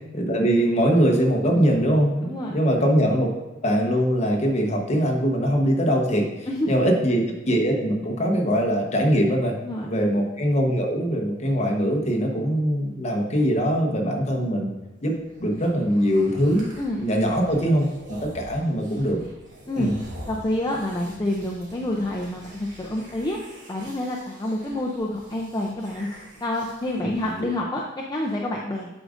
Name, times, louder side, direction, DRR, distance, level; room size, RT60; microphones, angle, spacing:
voice 1, 0.1-3.3 3.6-9.5 9.8-14.7 15.0-15.1 15.4-16.7 17.0-19.2 19.8-19.9 27.0-27.1 27.4-27.5, equal, 35° left, 1 dB, 1.0 m, -22 dB
voice 2, 2.2-2.5 6.5-6.9 9.6-9.9 16.8-17.0 19.7-19.9 20.3-23.4 23.7-26.1 26.4-27.8 28.1-28.9, left 1 dB, 20° left, -2 dB, 0.5 m, -28 dB
sound 1, 15.0-27.4, equal, 45° right, 1.7 m, -45 dB
8.6 x 5.0 x 2.5 m, 1.1 s
head